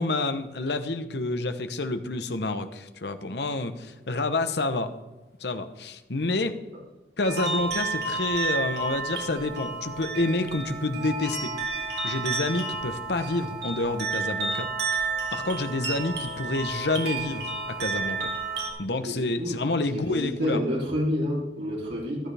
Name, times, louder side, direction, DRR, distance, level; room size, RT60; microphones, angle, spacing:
voice 1, 0.0-5.0 5.4-6.6 7.2-11.5 12.0-14.7 15.3-18.3 18.8-20.6, left 2 dB, 70° left, 9 dB, 1.0 m, -28 dB
sound 1, 7.2-18.7, right 4 dB, 65° right, 3.8 m, -31 dB
voice 2, 19.0-19.6 19.9-22.3, equal, 90° right, -5 dB, 3.6 m, -29 dB
14.0 x 12.5 x 3.5 m, 1.1 s
head